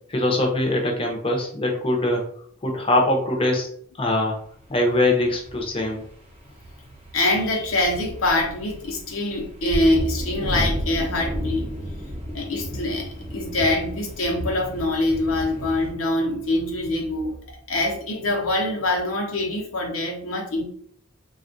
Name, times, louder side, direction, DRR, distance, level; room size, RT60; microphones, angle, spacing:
voice 1, 0.1-2.2 2.6-3.7 4.0-4.4 4.7-6.0, left 1 dB, 25° left, 1 dB, 0.6 m, -22 dB
sound 1, 4.6-15.9, equal, 30° right, 0.8 m, -33 dB
voice 2, 7.1-11.7 12.3-17.3 17.7-20.6, left 1 dB, 85° left, 0 dB, 0.7 m, -24 dB
3.4 x 2.3 x 2.6 m, 0.63 s
head